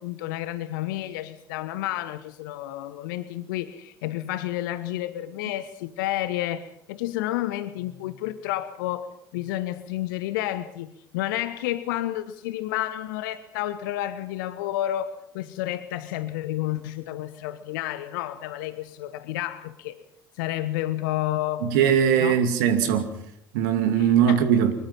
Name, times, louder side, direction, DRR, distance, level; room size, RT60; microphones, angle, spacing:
voice 1, 0.0-20.0 20.4-21.7 22.2-22.4 23.9-24.4, left 14 dB, 65° left, 1.1 m, -30 dB
voice 2, 21.6-23.1 23.5-24.7, right 8 dB, 65° right, 2.3 m, -20 dB
24.5 x 22.0 x 5.7 m
figure-of-eight pair, 60°, 12 cm